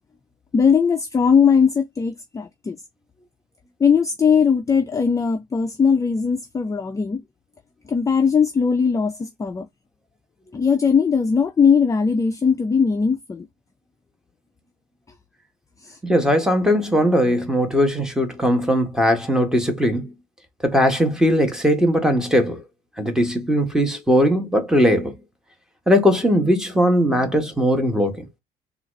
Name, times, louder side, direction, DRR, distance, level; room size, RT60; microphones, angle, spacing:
voice 1, 0.5-2.8 3.8-7.2 7.9-9.7 10.5-13.4 15.8-16.0, left 6 dB, 20° left, 0.4 m, -19 dB
voice 2, 16.0-20.1 20.6-22.6 23.0-25.1 25.9-28.2, equal, 5° right, 1.1 m, -19 dB
3.9 x 2.4 x 3.0 m
cardioid pair, 110°, 17 cm